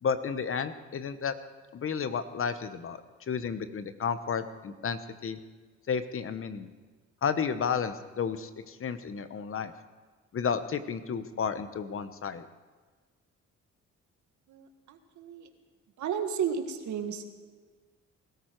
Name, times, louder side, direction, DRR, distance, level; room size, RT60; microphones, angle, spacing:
voice 1, 0.0-1.3 1.7-3.0 3.3-5.4 5.9-6.7 7.2-9.7 10.3-12.5, left 6 dB, 45° left, 11 dB, 1.0 m, -32 dB
voice 2, 14.5-15.5 16.0-17.3, right 7 dB, 75° right, 7 dB, 1.6 m, -33 dB
20.5 x 13.5 x 4.6 m, 1.4 s
cardioid pair, 90°, 30 cm